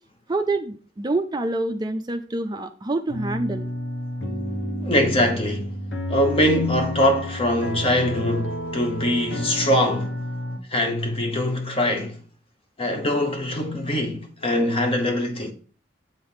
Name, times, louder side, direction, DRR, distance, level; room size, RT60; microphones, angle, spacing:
voice 1, 0.3-3.7, right 2 dB, 25° right, 0.4 m, -26 dB
sound 1, 3.1-10.6, equal, 75° left, 1.3 m, -30 dB
voice 2, 4.8-5.7 6.1-10.1 10.7-12.2 12.8-15.5, left 1 dB, 30° left, 1.1 m, -23 dB
7.9 x 3.4 x 5.6 m
head